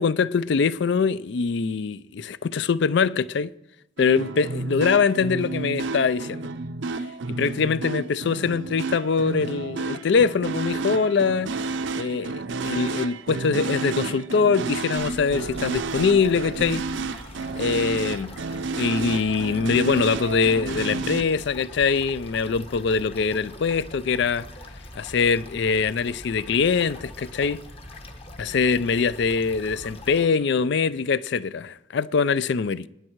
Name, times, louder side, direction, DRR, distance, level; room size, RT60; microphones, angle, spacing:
voice 1, 0.0-3.5 4.0-6.5 7.3-11.6 11.9-16.9 17.6-18.4 18.7-24.5 25.0-27.6 28.4-32.9, left 5 dB, 55° left, 0.4 m, -23 dB
sound 1, 4.0-21.2, right 3 dB, 65° right, 0.6 m, -31 dB
sound 2, 15.0-30.3, left 1 dB, 30° left, 1.1 m, -42 dB
21.5 x 9.7 x 4.6 m
head